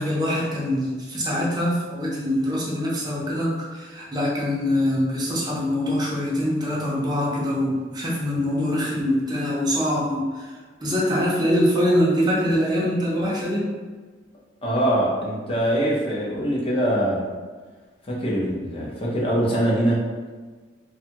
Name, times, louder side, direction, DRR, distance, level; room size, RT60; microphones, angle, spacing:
voice 1, 0.0-13.7, equal, 20° right, -5 dB, 0.6 m, -24 dB
voice 2, 14.6-17.2 18.1-20.0, right 1 dB, 30° left, -5 dB, 0.7 m, -23 dB
2.6 x 2.3 x 2.8 m, 1.4 s
head